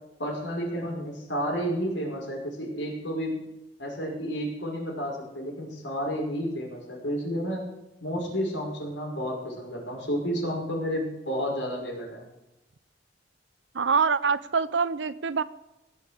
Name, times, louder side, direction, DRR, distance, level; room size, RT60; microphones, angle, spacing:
voice 1, 0.2-3.4 3.8-7.6 8.0-12.3, equal, 80° left, -1 dB, 5.4 m, -31 dB
voice 2, 13.7-15.4, right 5 dB, 80° right, 16 dB, 0.7 m, -25 dB
17.5 x 6.9 x 8.1 m, 0.93 s
head